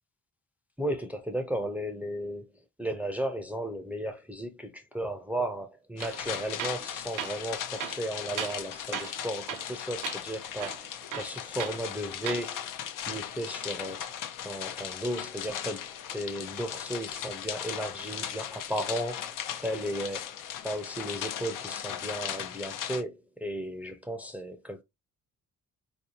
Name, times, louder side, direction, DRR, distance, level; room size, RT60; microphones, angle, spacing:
voice 1, 0.8-2.5 2.8-12.7 13.1-14.1 14.4-19.3 19.6-20.3 20.6-24.8, equal, 5° right, 0.4 m, -35 dB
sound 1, 6.0-23.0, left 9 dB, 90° left, 0.6 m, -38 dB
Tools, 6.0-6.2 6.6-6.9 7.2-7.4 7.8-8.7 8.9-9.2 9.5-9.8 10.0-10.2 10.6-11.8 12.2-12.5, right 9 dB, 85° right, 0.6 m, -36 dB
4.3 x 2.6 x 2.8 m
cardioid pair, 120°, 31 cm